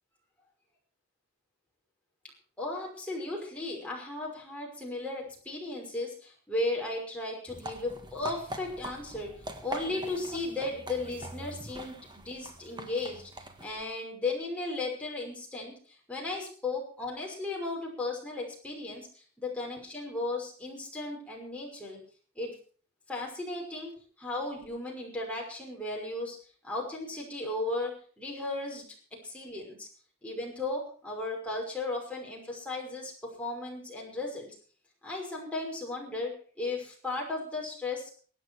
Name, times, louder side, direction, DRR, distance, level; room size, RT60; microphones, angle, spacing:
voice 1, 2.6-22.0 22.4-22.5 23.1-23.9 24.2-26.4 26.6-28.9 29.2-29.9 30.2-34.6 35.0-38.2, left 2 dB, 5° left, -2 dB, 5.7 m, -35 dB
sound 1, 7.5-13.8, right 1 dB, 20° right, 1.7 m, -43 dB
23.5 x 9.3 x 4.7 m, 0.43 s
head